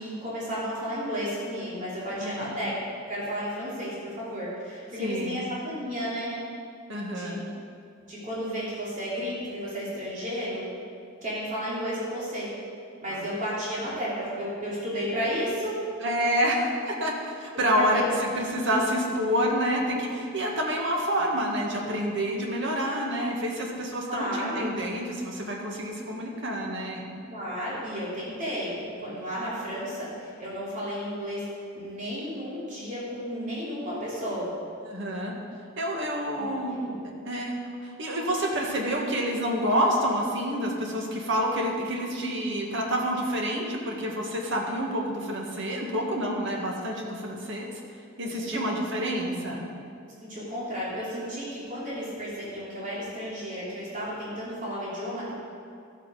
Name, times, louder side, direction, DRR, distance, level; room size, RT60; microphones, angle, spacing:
voice 1, 0.0-6.3 7.1-7.4 8.1-10.6 11.2-12.5 13.0-15.7 17.7-18.1 24.1-24.7 27.3-31.5 31.7-34.5 36.3-36.5 36.8-36.9 46.1-46.3 48.2-48.6 50.2-55.3, equal, 40° right, -8 dB, 3.2 m, -33 dB
voice 2, 2.2-2.5 5.0-5.4 6.9-7.4 13.1-13.4 16.0-18.0 18.3-27.1 34.9-35.3 35.8-36.8 37.3-47.7 48.2-49.7, equal, 65° right, -1 dB, 1.9 m, -28 dB
13.0 x 8.1 x 5.1 m, 2.4 s
head